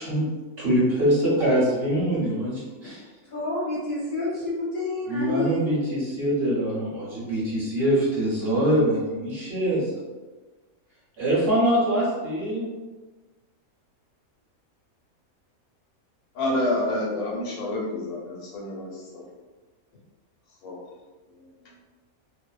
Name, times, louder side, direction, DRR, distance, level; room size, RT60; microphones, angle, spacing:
voice 1, 0.6-3.0 5.1-9.8 11.2-12.7, right 1 dB, 50° right, -8 dB, 1.0 m, -23 dB
voice 2, 3.3-5.6, left 2 dB, 50° left, -7 dB, 0.7 m, -29 dB
voice 3, 16.3-19.2 20.6-20.8, left 1 dB, 85° left, -3 dB, 1.1 m, -28 dB
2.6 x 2.1 x 2.3 m, 1.3 s
omnidirectional pair, 1.5 m